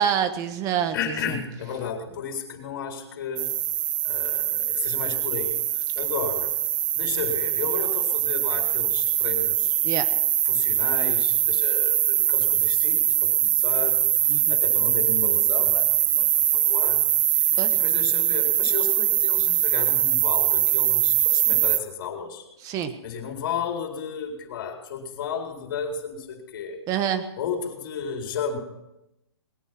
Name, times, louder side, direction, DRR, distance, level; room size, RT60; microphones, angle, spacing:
voice 1, 0.0-1.0 1.3-1.4 9.8-10.0 14.3-14.5 17.6-17.7 22.6-22.9 26.9-27.2, right 9 dB, 25° right, 10 dB, 1.4 m, -26 dB
voice 2, 0.9-3.5 4.0-6.5 6.9-9.8 10.4-17.0 17.3-22.5 23.0-26.8 27.4-28.6, left 6 dB, 50° left, 2 dB, 4.4 m, -33 dB
sound 1, 3.4-21.8, right 12 dB, 50° right, 0.5 m, -22 dB
20.5 x 9.4 x 6.0 m, 0.89 s
hypercardioid pair, 145°, 14 cm